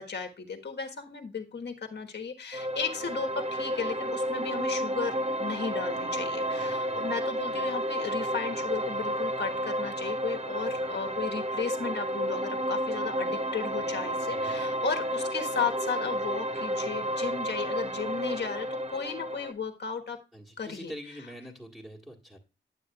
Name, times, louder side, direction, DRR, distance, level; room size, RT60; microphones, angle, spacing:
voice 1, 0.0-20.2 20.6-20.9, left 6 dB, 60° left, 4 dB, 1.5 m, -35 dB
sound 1, 2.5-19.5, equal, 30° right, 1.0 m, -31 dB
voice 2, 6.6-7.1 14.3-14.6 20.3-22.4, equal, 5° right, -4 dB, 1.8 m, -45 dB
9.3 x 8.7 x 2.4 m, 0.29 s
wide cardioid pair, 90°, 20 cm